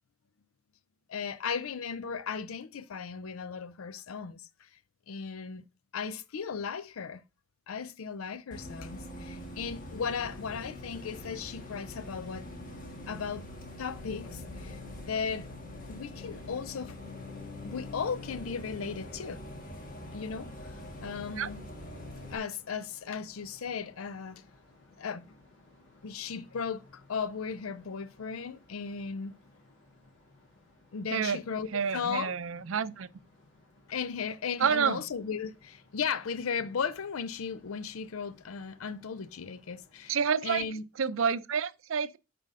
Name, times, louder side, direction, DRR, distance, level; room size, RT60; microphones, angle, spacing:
voice 1, 1.1-4.7 5.1-5.6 5.9-7.2 7.7-12.5 13.1-13.5 13.8-15.5 15.9-17.0 17.6-19.4 20.1-21.6 22.3-24.4 25.0-25.2 26.0-29.3 30.9-32.3 33.9-40.8, left 6 dB, 90° left, 0.5 m, -36 dB
Bus, 8.5-22.4, left 1 dB, 40° left, 1.6 m, -43 dB
sound 1, 22.2-40.3, left 2 dB, 60° left, 3.0 m, -61 dB
voice 2, 31.7-33.1 34.6-35.0 40.1-40.7 41.0-42.2, right 6 dB, 70° right, 0.5 m, -28 dB
7.4 x 5.1 x 3.7 m
head